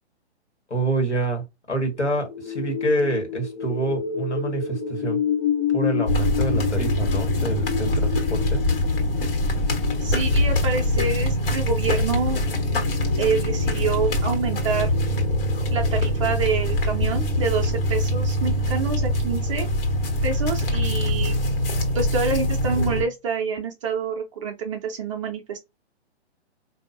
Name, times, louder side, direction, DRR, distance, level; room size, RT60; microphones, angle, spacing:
voice 1, 0.7-5.2 5.7-8.6, right 2 dB, 90° left, 1.7 m, -27 dB
sound 1, 2.0-16.3, left 8 dB, 40° left, 0.5 m, -31 dB
sound 2, 6.1-23.0, left 1 dB, 55° left, 1.5 m, -23 dB
voice 2, 10.0-12.4 13.2-14.9 15.7-19.7 20.2-21.4 21.9-25.6, right 5 dB, 30° right, 0.5 m, -27 dB
4.3 x 2.7 x 2.6 m
figure-of-eight pair, 125°, 34 cm